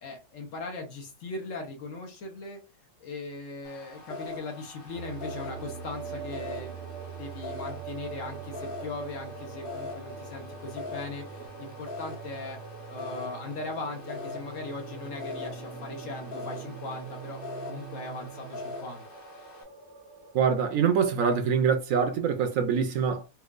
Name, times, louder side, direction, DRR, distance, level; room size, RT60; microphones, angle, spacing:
voice 1, 0.0-2.6 3.0-6.9 7.2-12.6 12.9-19.0, left 3 dB, 60° left, 1.2 m, -39 dB
sound 1, 3.6-19.6, left 3 dB, 40° left, 1.0 m, -43 dB
sound 2, 4.9-21.0, right 5 dB, 90° right, 1.2 m, -42 dB
voice 2, 20.3-23.2, right 6 dB, 70° right, 1.0 m, -24 dB
4.4 x 2.4 x 2.4 m
omnidirectional pair, 1.6 m